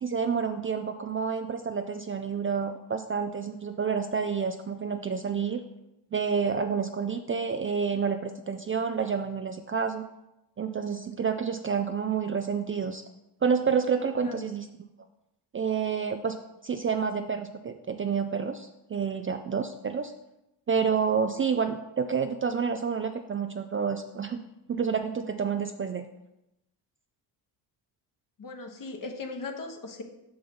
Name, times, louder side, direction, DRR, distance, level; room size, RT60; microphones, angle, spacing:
voice 1, 0.0-5.6 6.1-10.1 10.6-13.0 13.4-14.7 15.5-16.4 16.6-20.1 20.7-24.4 24.7-26.0, right 6 dB, 30° right, 7 dB, 0.4 m, -29 dB
voice 2, 28.4-30.0, left 3 dB, 45° left, 5 dB, 1.2 m, -38 dB
5.6 x 5.1 x 5.3 m, 0.89 s
cardioid pair, 70°, 47 cm